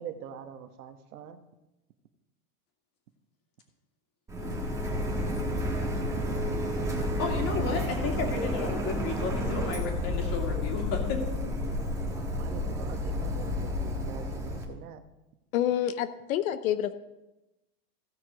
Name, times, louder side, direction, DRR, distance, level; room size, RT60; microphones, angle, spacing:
voice 1, 0.0-1.4 12.3-15.0, right 8 dB, 70° right, 9 dB, 1.2 m, -44 dB
Printer, 4.3-14.6, left 1 dB, 5° right, 1.4 m, -31 dB
voice 2, 4.4-4.7 7.2-11.2, left 4 dB, 30° left, 2 dB, 2.5 m, -33 dB
voice 3, 15.5-16.9, left 11 dB, 60° left, 11 dB, 0.8 m, -28 dB
16.5 x 6.4 x 4.9 m, 0.99 s
supercardioid pair, 155°, 46 cm